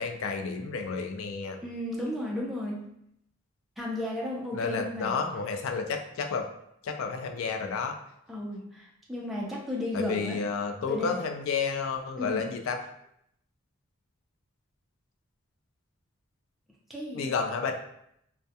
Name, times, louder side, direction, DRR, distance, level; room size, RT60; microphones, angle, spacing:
voice 1, 0.0-1.6 4.5-6.5 6.8-8.0 9.9-12.8 17.1-17.7, left 5 dB, 85° left, 4 dB, 0.3 m, -31 dB
voice 2, 1.6-2.9 3.8-5.2 8.3-10.4 10.9-11.1 12.2-12.4 16.9-17.3, left 1 dB, ahead, -5 dB, 0.4 m, -34 dB
2.2 x 2.1 x 2.7 m, 0.75 s
head